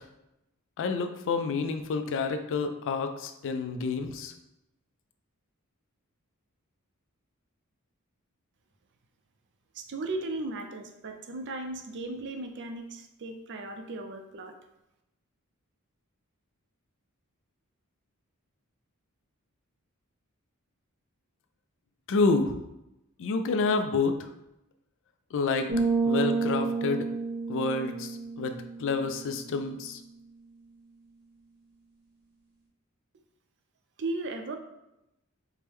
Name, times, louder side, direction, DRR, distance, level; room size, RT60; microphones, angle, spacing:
voice 1, 0.8-4.3 22.1-22.5 23.2-24.2 25.3-25.7 26.0-27.1 27.5-30.0, left 4 dB, 60° left, 7 dB, 0.4 m, -28 dB
voice 2, 9.7-14.5 34.0-34.6, right 2 dB, 55° right, 5 dB, 0.5 m, -36 dB
sound 1, 25.7-29.4, right 4 dB, 85° right, 1.1 m, -30 dB
4.5 x 2.1 x 3.4 m, 0.88 s
head